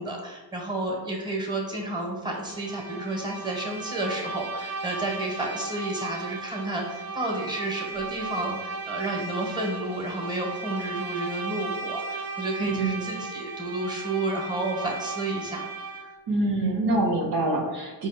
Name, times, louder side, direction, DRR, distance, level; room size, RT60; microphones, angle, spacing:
voice 1, 0.0-15.7 16.0-16.1, right 2 dB, 10° right, -1 dB, 1.4 m, -31 dB
Bowed string instrument, 2.3-16.2, right 3 dB, 60° right, 0.8 m, -36 dB
voice 2, 12.6-13.1 16.3-18.1, right 2 dB, 85° right, -2 dB, 1.1 m, -25 dB
4.8 x 2.5 x 4.3 m, 1.3 s
cardioid pair, 65°, 39 cm